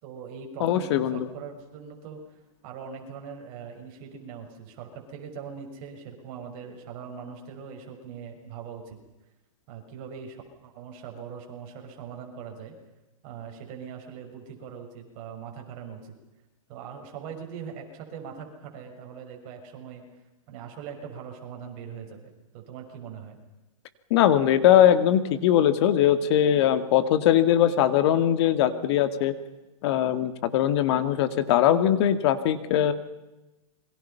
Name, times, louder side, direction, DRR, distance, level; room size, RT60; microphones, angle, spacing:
voice 1, 0.0-2.2 2.6-9.0 9.7-12.8 13.2-16.2 16.7-20.1 20.5-23.4, right 7 dB, 40° right, 2 dB, 6.1 m, -41 dB
voice 2, 0.6-1.2 24.1-29.3 29.8-32.9, left 10 dB, 50° left, 11 dB, 2.0 m, -21 dB
28.5 x 23.5 x 5.7 m, 1.0 s
hypercardioid pair, 145°, 18 cm